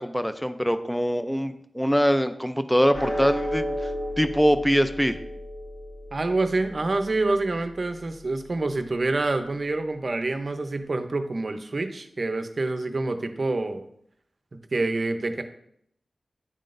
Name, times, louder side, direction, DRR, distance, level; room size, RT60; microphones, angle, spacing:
voice 1, 0.0-3.7 4.2-5.2, equal, 5° left, 10 dB, 0.4 m, -23 dB
sound 1, 2.9-9.5, equal, 55° left, 2.0 m, -35 dB
voice 2, 6.1-13.9 14.5-15.4, right 2 dB, 55° right, 7 dB, 0.6 m, -27 dB
9.9 x 3.7 x 2.6 m, 0.71 s
wide cardioid pair, 60°, 0 cm